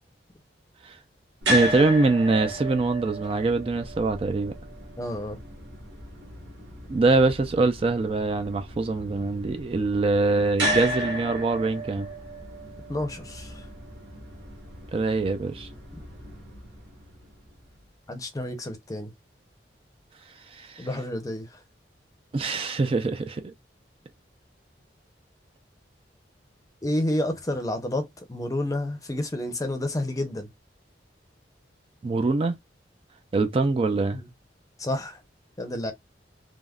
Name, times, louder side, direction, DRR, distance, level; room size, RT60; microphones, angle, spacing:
sound 1, 1.4-17.6, equal, 85° right, 1.4 m, -34 dB
voice 1, 1.5-4.6 6.9-12.1 14.9-15.7 20.5-20.9 22.3-23.5 32.0-32.6 33.3-34.2, right 3 dB, 30° right, 0.3 m, -24 dB
voice 2, 5.0-5.4 12.9-13.7 18.1-19.1 20.8-21.6 26.8-30.5 34.1-34.3 34.8-35.2 35.6-35.9, left 1 dB, 20° left, 0.6 m, -30 dB
3.4 x 2.1 x 2.3 m
head